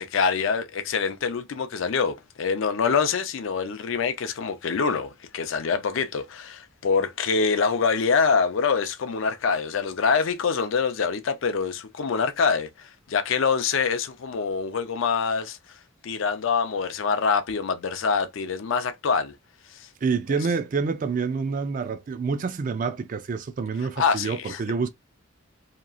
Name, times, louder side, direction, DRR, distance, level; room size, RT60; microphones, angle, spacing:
voice 1, 0.0-15.6 16.0-19.3 20.3-20.4 24.0-24.6, left 5 dB, 65° left, 0.4 m, -25 dB
voice 2, 20.0-24.9, right 5 dB, 40° right, 0.3 m, -27 dB
2.9 x 2.3 x 2.4 m
head